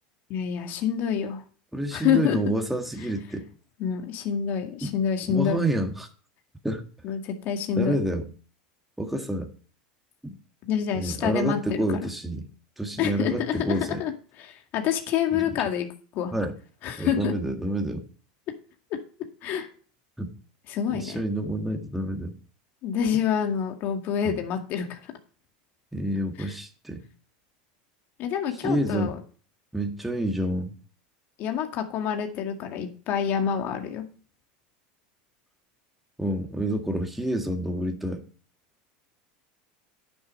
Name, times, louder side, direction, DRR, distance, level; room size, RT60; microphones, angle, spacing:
voice 1, 0.3-1.4 1.9-2.4 3.8-5.6 7.0-8.0 10.7-12.0 13.0-14.1 14.4-15.9 16.1-16.3 16.8-17.3 19.4-19.7 20.7-21.2 22.8-25.0 26.4-26.5 28.2-29.2 31.4-34.0, left 8 dB, 50° left, 4 dB, 2.0 m, -27 dB
voice 2, 1.7-3.5 4.8-5.0 5.3-6.1 6.6-6.8 7.8-8.3 9.0-9.5 10.2-10.3 10.9-12.5 12.8-14.0 15.3-15.6 16.3-16.6 17.0-18.1 20.2-20.3 20.9-22.3 24.2-24.4 25.9-27.0 28.6-29.1 29.7-30.7 36.2-38.2, right 1 dB, 5° right, 3 dB, 1.8 m, -28 dB
11.0 x 7.3 x 5.3 m, 0.40 s
supercardioid pair, 130°, 4 cm